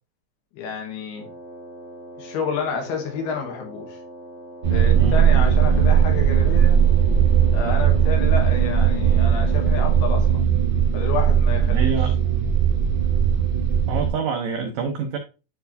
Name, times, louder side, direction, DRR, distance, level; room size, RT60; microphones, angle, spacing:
voice 1, 0.5-1.3 2.2-4.0 4.7-6.8 7.5-10.4 10.9-12.0, left 5 dB, 70° left, 3.2 m, -29 dB
Wind instrument woodwind instrument, 1.1-10.5, equal, 30° right, 1.3 m, -42 dB
sound 1, 4.6-14.1, right 8 dB, 60° right, 1.2 m, -18 dB
voice 2, 11.7-12.1 13.9-15.2, right 6 dB, 85° right, 1.8 m, -26 dB
10.0 x 4.6 x 2.6 m
omnidirectional pair, 4.9 m